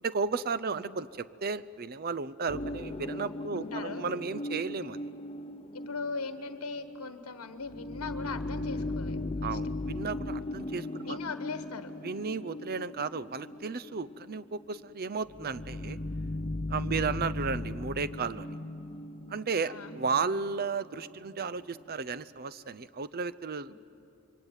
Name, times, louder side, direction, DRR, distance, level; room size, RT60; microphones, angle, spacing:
voice 1, 0.0-5.0 9.4-11.2 12.0-16.0 16.7-18.5 19.3-23.7, right 5 dB, 45° right, 16 dB, 0.6 m, -34 dB
voice 2, 0.7-1.0 3.5-4.0 5.7-9.6 11.1-11.9 16.9-17.3 19.6-20.0 23.7-23.8, left 4 dB, 80° left, 10 dB, 1.2 m, -40 dB
sound 1, 2.5-21.1 21.5-21.6, left 2 dB, 25° left, 0.5 m, -38 dB
27.0 x 23.0 x 9.1 m, 2.8 s
head